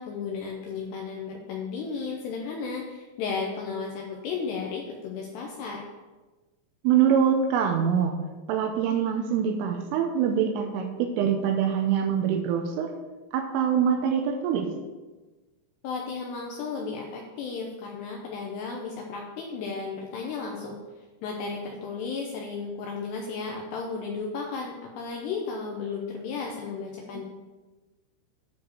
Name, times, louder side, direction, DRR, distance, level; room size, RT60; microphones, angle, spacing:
voice 1, 0.0-5.8 15.8-20.8 21.2-27.2, left 5 dB, 85° left, 0 dB, 2.4 m, -34 dB
voice 2, 6.8-8.1 8.5-12.9 13.3-14.7 27.1-27.2, right 8 dB, 85° right, 4 dB, 3.2 m, -24 dB
9.7 x 4.8 x 6.5 m, 1.2 s
omnidirectional pair, 5.9 m